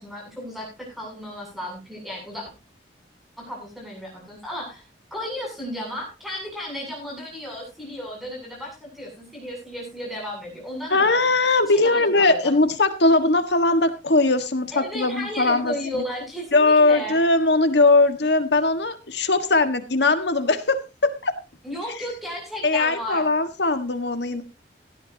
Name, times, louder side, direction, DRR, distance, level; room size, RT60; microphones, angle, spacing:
voice 1, 0.0-2.5 3.4-4.8 5.1-11.2 11.7-12.5 14.7-17.2 21.6-23.2, left 1 dB, ahead, -1 dB, 7.7 m, -34 dB
voice 2, 10.9-15.7 16.5-21.3 22.6-24.4, left 2 dB, 70° left, 9 dB, 1.6 m, -20 dB
17.0 x 12.5 x 2.8 m, 0.27 s
head